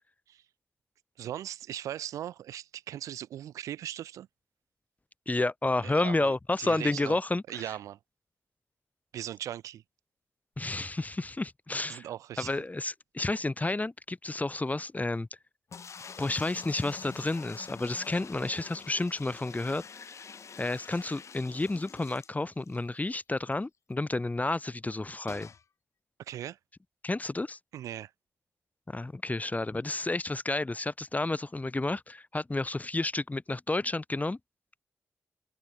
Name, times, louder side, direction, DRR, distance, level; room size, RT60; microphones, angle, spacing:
voice 1, 1.2-4.3 5.8-7.2 7.5-8.0 9.1-9.8 11.9-12.5 26.2-26.6 27.7-28.1, right 11 dB, 90° right, 2.4 m, -39 dB
voice 2, 5.3-7.7 10.6-12.1 12.4-15.3 16.2-20.2 20.6-25.5 27.0-27.6 28.9-34.4, left 2 dB, 30° left, 4.7 m, -31 dB
sound 1, 15.7-22.9 23.2-23.3 23.5-23.6 25.3-25.6, left 6 dB, 65° left, 7.0 m, -47 dB
supercardioid pair, 40°, 5 cm